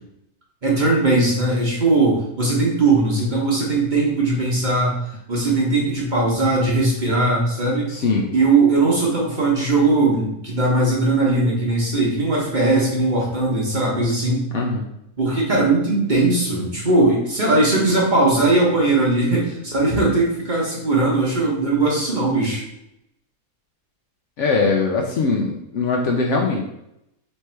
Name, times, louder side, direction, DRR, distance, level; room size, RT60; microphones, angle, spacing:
voice 1, 0.6-4.9 5.3-7.9 8.3-14.5 15.2-22.6, right 2 dB, 35° right, -4 dB, 1.0 m, -19 dB
voice 2, 7.9-8.3 14.5-14.9 24.4-26.7, left 4 dB, 65° left, 0 dB, 0.8 m, -21 dB
3.3 x 3.2 x 4.3 m, 0.82 s
omnidirectional pair, 1.6 m